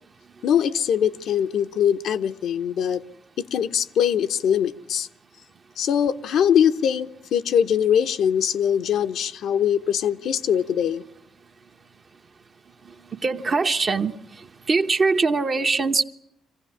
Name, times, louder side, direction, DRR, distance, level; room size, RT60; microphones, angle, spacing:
voice 1, 0.4-3.0 3.4-5.1 5.8-11.0, left 8 dB, 75° left, 8 dB, 0.8 m, -22 dB
voice 2, 13.2-14.1 14.7-16.0, right 4 dB, 40° right, 5 dB, 1.0 m, -21 dB
24.0 x 15.5 x 9.9 m, 0.79 s
cardioid pair, 90°, 0 cm